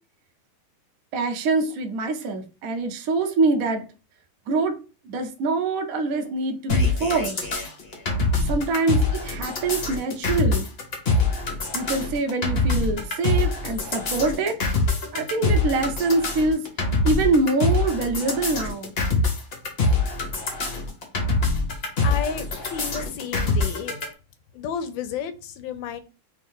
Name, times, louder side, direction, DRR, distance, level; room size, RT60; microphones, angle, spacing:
voice 1, 1.1-3.8 4.5-4.8 5.0-7.5 8.5-10.7 11.7-14.6 15.1-16.6 17.0-18.9, right 3 dB, 80° right, 0.7 m, -24 dB
sound 1, 6.7-24.1, left 3 dB, 55° left, 0.6 m, -24 dB
voice 2, 22.0-23.9 24.5-26.0, left 7 dB, 75° left, 1.2 m, -32 dB
3.5 x 2.8 x 3.5 m
omnidirectional pair, 2.4 m